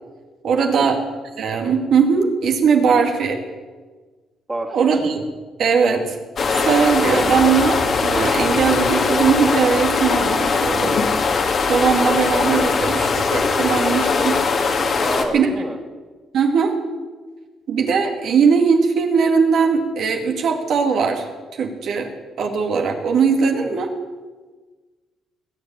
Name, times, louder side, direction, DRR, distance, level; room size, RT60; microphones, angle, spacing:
voice 1, 0.4-1.0 1.4-3.4 4.7-5.2 5.6-6.2 6.7-11.0 11.7-14.4 15.3-15.5 16.3-16.7 17.7-21.3 21.5-22.1 22.4-23.9, right 6 dB, 70° right, 3 dB, 2.2 m, -19 dB
voice 2, 4.5-4.9 15.0-15.8 23.5-23.8, right 1 dB, 15° right, 3 dB, 2.4 m, -29 dB
sound 1, 6.4-15.2, left 4 dB, 50° left, 2.2 m, -20 dB
20.0 x 7.6 x 9.0 m, 1.3 s
cardioid pair, 95°, 0 cm